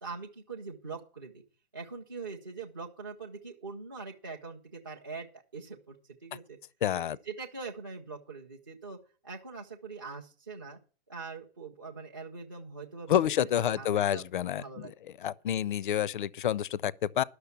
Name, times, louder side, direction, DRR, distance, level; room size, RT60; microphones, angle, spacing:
voice 1, 0.0-1.4 1.7-5.3 5.5-6.6 7.0-9.0 9.2-10.8 11.1-14.3 14.6-14.9, right 4 dB, 20° right, 0.4 m, -43 dB
voice 2, 6.8-7.2 13.1-14.9 15.2-17.2, left 10 dB, 50° left, 0.4 m, -28 dB
11.5 x 6.4 x 6.8 m
hypercardioid pair, 180°, 33 cm